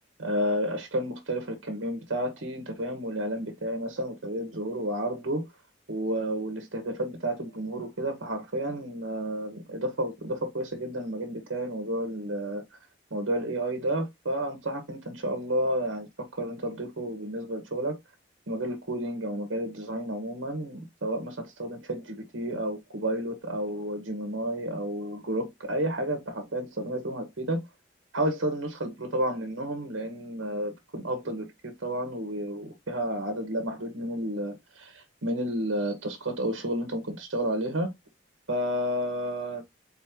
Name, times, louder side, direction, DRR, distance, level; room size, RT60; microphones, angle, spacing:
voice 1, 0.2-5.5 5.9-12.6 13.1-18.0 18.5-27.6 28.1-37.9 38.5-39.6, right 1 dB, 85° right, 1.1 m, -31 dB
4.2 x 2.9 x 3.4 m
head